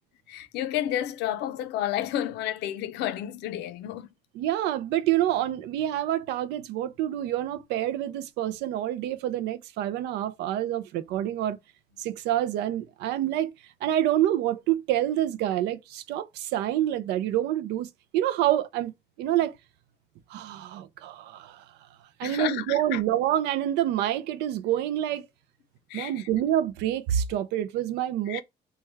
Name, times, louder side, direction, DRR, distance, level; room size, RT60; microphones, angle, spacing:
voice 1, 0.3-4.1 22.2-23.0 25.9-26.3 28.3-28.4, left 12 dB, 85° left, 0.5 m, -31 dB
voice 2, 4.4-11.6 12.0-13.5 13.8-18.9 19.2-19.5 20.3-21.6 22.2-25.3 25.9-28.4, right 12 dB, 85° right, 0.4 m, -27 dB
3.1 x 2.2 x 3.3 m
cardioid pair, 110°, 17 cm